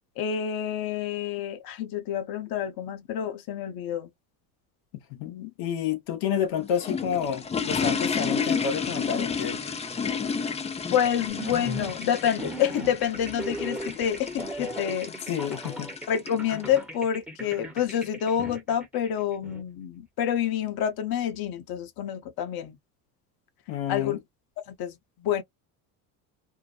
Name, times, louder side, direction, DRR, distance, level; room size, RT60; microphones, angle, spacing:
voice 1, 0.2-4.1 10.9-15.1 16.1-22.8 23.9-24.2 24.7-24.9 25.2-25.4, left 9 dB, 55° left, 0.9 m, -28 dB
voice 2, 5.1-9.6 15.3-15.9 23.7-24.2, left 8 dB, 85° left, 0.9 m, -29 dB
sound 1, 6.4-16.8, left 5 dB, 15° left, 0.4 m, -32 dB
sound 2, 11.3-19.6, right 1 dB, 5° right, 0.8 m, -38 dB
2.7 x 2.1 x 2.4 m
supercardioid pair, 95°, 42 cm